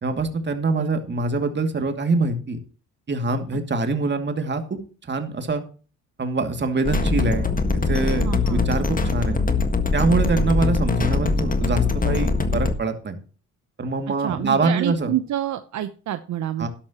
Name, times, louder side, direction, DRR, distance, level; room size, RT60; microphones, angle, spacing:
voice 1, 0.0-2.6 3.1-5.6 6.2-7.5 7.9-9.4 9.9-13.2 13.8-15.1 16.6-16.7, right 3 dB, 35° right, 6 dB, 2.5 m, -24 dB
sound 1, 6.8-12.7, left 3 dB, 30° left, 1.7 m, -22 dB
voice 2, 8.2-8.6 14.2-16.7, right 12 dB, 70° right, 10 dB, 0.9 m, -28 dB
12.5 x 11.5 x 3.0 m, 0.38 s
cardioid pair, 90°, 30 cm